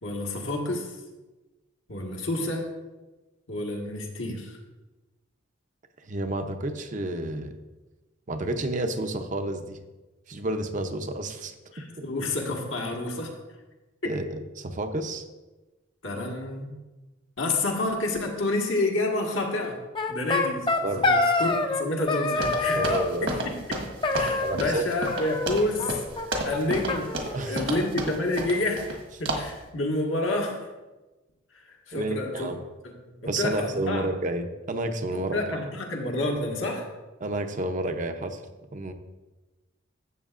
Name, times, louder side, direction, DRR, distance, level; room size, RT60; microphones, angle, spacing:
voice 1, 0.0-0.9 1.9-2.7 3.5-4.6 11.7-13.3 14.0-14.1 16.0-16.7 17.4-19.8 20.1-22.9 23.2-26.0 26.4-27.1 27.4-30.6 31.5-32.5 33.1-34.1 35.1-36.9, left 2 dB, 75° left, 0 dB, 1.6 m, -29 dB
voice 2, 6.1-7.5 8.3-9.8 10.3-11.5 14.0-15.2 20.8-21.2 22.8-23.3 24.4-24.8 27.3-27.8 31.9-32.6 33.2-35.4 37.2-38.4 38.7-38.9, right 2 dB, 40° right, 7 dB, 0.6 m, -30 dB
sound 1, 19.9-21.8 22.1-23.1 24.0-24.8 25.1-25.9 26.2-26.3 26.5-26.6 26.9-27.9, left 3 dB, 25° left, 0.6 m, -26 dB
sound 2, 22.4-29.0 29.3-29.6, right 1 dB, 70° right, 1.4 m, -32 dB
12.5 x 7.8 x 2.5 m, 1.1 s
head